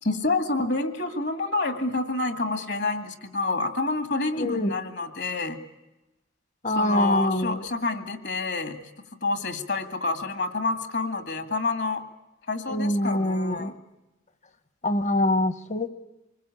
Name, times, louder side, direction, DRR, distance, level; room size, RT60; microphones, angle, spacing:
voice 1, 0.0-5.6 6.7-8.9 9.2-12.0 12.5-13.8, left 3 dB, 60° left, 10 dB, 2.2 m, -28 dB
voice 2, 4.4-4.7 6.6-7.6 12.7-13.7 14.8-15.9, left 1 dB, 35° left, 14 dB, 1.1 m, -24 dB
25.5 x 20.5 x 8.5 m, 0.99 s
head